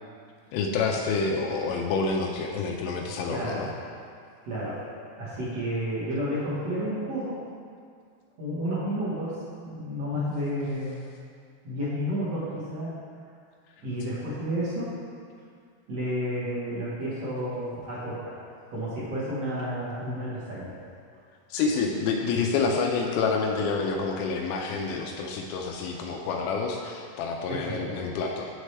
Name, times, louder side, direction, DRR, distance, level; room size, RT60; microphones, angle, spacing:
voice 1, 0.5-3.7 21.5-28.5, left 4 dB, 85° left, 0 dB, 2.4 m, -28 dB
voice 2, 3.3-3.7 4.5-4.8 5.2-7.4 8.4-11.0 11.6-12.9 13.8-15.0 15.9-18.3 18.7-20.8 27.5-28.0, equal, 55° right, -9 dB, 2.0 m, -31 dB
8.1 x 6.4 x 3.3 m, 2.2 s
omnidirectional pair, 4.2 m